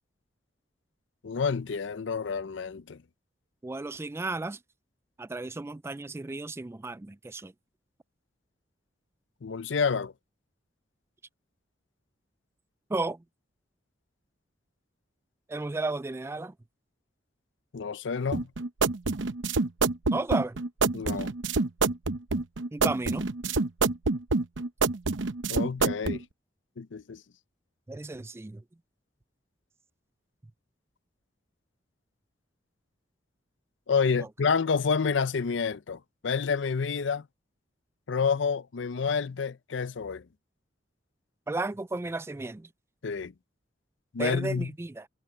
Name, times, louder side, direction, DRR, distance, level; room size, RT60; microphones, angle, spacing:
voice 1, 1.2-3.0 9.4-10.1 17.7-18.5 20.9-21.3 25.5-26.2 26.8-27.2 33.9-37.3 38.1-40.2 43.0-43.3 44.1-44.7, left 5 dB, 80° left, 0.6 m, -29 dB
voice 2, 3.6-4.6 5.2-7.5 12.9-13.2 15.5-16.5 20.1-20.6 22.7-23.3 27.9-28.6 41.5-42.7 44.2-45.1, right 2 dB, 15° right, 0.3 m, -33 dB
sound 1, 18.3-26.2, right 3 dB, 80° right, 0.8 m, -27 dB
head